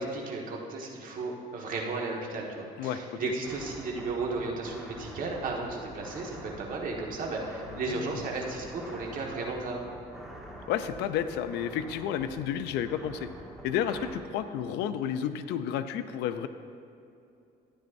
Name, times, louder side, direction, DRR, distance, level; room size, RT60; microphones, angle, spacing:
voice 1, 0.0-9.8, right 3 dB, 55° right, -1 dB, 1.6 m, -34 dB
voice 2, 2.8-3.2 7.7-8.2 10.7-13.3 13.6-16.5, left 9 dB, 85° left, 11 dB, 0.5 m, -31 dB
sound 1, 3.4-14.2, equal, ahead, 1.3 m, -46 dB
12.5 x 10.5 x 2.6 m, 2.6 s
cardioid pair, 110°, 17 cm